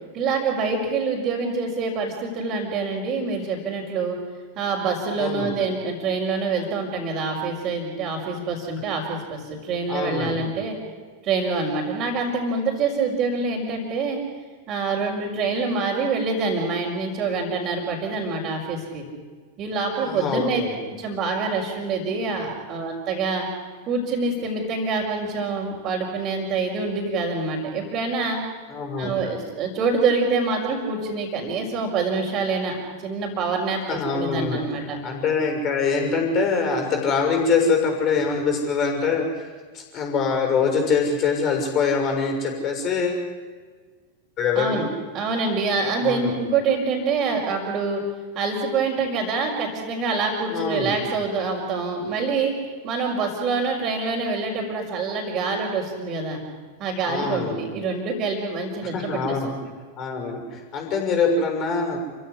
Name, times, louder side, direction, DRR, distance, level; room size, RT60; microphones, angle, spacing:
voice 1, 0.1-4.2 4.6-10.8 11.2-14.2 14.7-19.0 19.6-20.6 21.0-23.5 23.9-28.4 29.0-35.0 44.5-44.9 45.1-48.0 48.4-52.5 52.8-56.4 56.8-59.6, right 4 dB, 35° right, -5 dB, 5.3 m, -26 dB
voice 2, 5.2-5.5 9.9-10.4 20.0-20.7 28.7-29.3 33.9-39.2 39.7-43.2 44.4-44.9 46.0-46.3 50.5-51.0 57.1-57.6 58.9-59.5 60.0-62.0, left 5 dB, 35° left, 3 dB, 6.6 m, -24 dB
29.5 x 15.5 x 10.0 m, 1.5 s
figure-of-eight pair, 90°, 0 cm